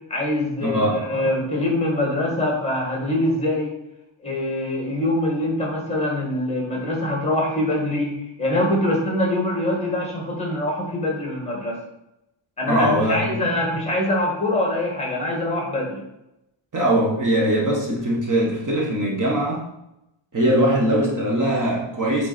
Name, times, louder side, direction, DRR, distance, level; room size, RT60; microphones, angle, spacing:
voice 1, 0.1-3.7 4.2-11.8 12.6-16.0, left 1 dB, 15° left, -1 dB, 2.1 m, -24 dB
voice 2, 0.6-1.0 12.7-13.4 16.7-19.7 20.3-22.3, right 1 dB, 40° right, -2 dB, 1.5 m, -21 dB
7.7 x 4.4 x 4.4 m, 0.88 s
wide cardioid pair, 155°, 48 cm